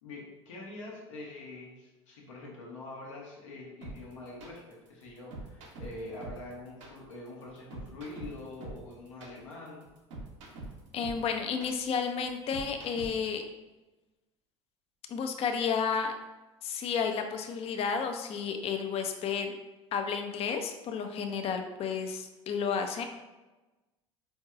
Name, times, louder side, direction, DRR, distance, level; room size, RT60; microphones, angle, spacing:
voice 1, 0.0-9.9, left 2 dB, 80° left, -3 dB, 1.0 m, -45 dB
sound 1, 3.8-13.3, right 2 dB, 70° right, 0.8 m, -44 dB
voice 2, 10.9-13.4 15.1-16.1 16.6-19.6 19.9-23.0, left 6 dB, 40° left, 5 dB, 0.5 m, -32 dB
4.5 x 2.6 x 2.4 m, 1.1 s
hypercardioid pair, 70°, 16 cm